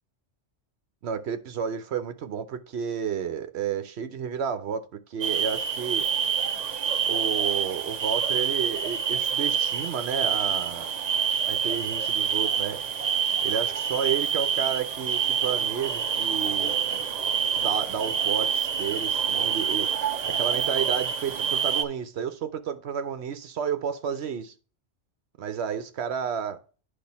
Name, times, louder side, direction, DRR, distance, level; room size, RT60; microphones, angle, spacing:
voice 1, 1.0-6.1 7.0-10.9 11.5-12.8 13.4-16.7 17.5-19.9 20.2-24.5 25.4-26.6, right 7 dB, 65° right, 1.0 m, -31 dB
sound 1, 5.2-21.8, right 7 dB, 50° right, 0.6 m, -27 dB
10.0 x 3.4 x 4.2 m
omnidirectional pair, 1.2 m